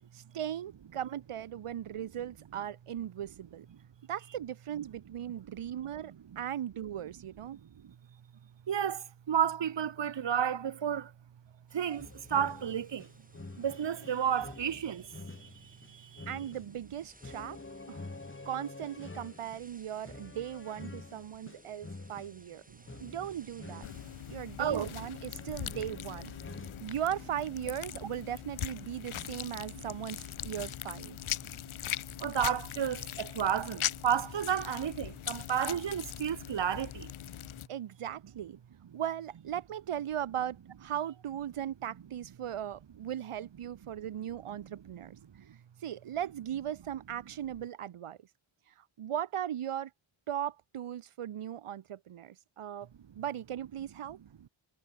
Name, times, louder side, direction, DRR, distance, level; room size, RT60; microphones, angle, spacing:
voice 1, 0.1-3.7 4.1-7.6 16.3-17.6 17.9-18.1 18.4-22.6 23.0-23.9 24.3-26.3 26.8-31.1 37.7-38.6 38.9-45.2 45.8-48.2 49.0-49.9 50.3-52.9 53.1-54.2, right 10 dB, 85° right, 1.2 m, -38 dB
voice 2, 6.1-6.4 7.6-7.9 8.7-11.1 11.7-13.1 13.6-16.3 22.7-22.8 23.9-24.0 24.6-24.9 29.1-29.2 31.4-31.5 32.2-37.1 44.6-44.7 45.3-45.6, right 8 dB, 60° right, 1.2 m, -32 dB
sound 1, 11.7-25.2, right 2 dB, 15° right, 5.0 m, -62 dB
sound 2, 12.0-27.4, left 3 dB, 25° left, 5.4 m, -48 dB
sound 3, 23.8-37.7, left 12 dB, 75° left, 0.8 m, -40 dB
wide cardioid pair, 115°, 50 cm